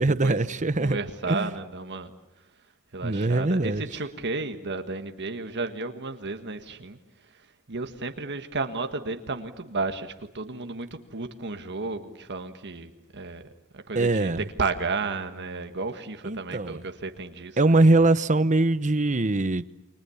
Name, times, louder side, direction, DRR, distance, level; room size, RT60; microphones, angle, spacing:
voice 1, 0.0-1.0 1.3-1.5 3.0-3.9 13.9-14.4 16.2-16.8 17.6-19.6, right 2 dB, 35° right, 0.9 m, -22 dB
voice 2, 0.8-2.1 2.9-7.0 7.3-13.5 13.7-14.3 14.6-17.8, right 3 dB, 55° right, 1.6 m, -33 dB
29.5 x 25.0 x 7.2 m
head